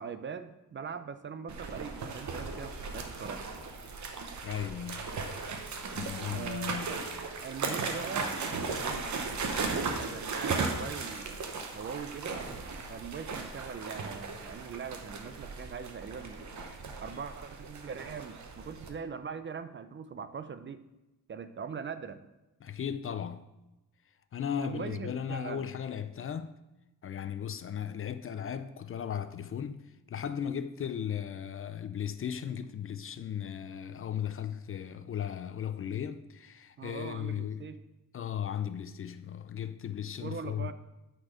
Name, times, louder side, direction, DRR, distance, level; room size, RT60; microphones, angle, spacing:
voice 1, 0.0-3.4 6.3-7.0 7.4-8.4 8.6-9.2 9.7-12.5 12.9-16.5 17.0-20.8 21.3-22.2 24.6-25.7 36.8-37.8 40.2-40.7, right 6 dB, 35° right, 0.4 m, -41 dB
sound 1, 1.5-18.9, right 4 dB, 60° right, 1.0 m, -37 dB
voice 2, 4.4-5.1 5.9-7.0 22.6-23.5 24.3-26.5 27.0-29.8 30.1-37.6 38.1-40.7, left 8 dB, 40° left, 0.4 m, -36 dB
8.9 x 4.4 x 4.8 m
wide cardioid pair, 130°, 33 cm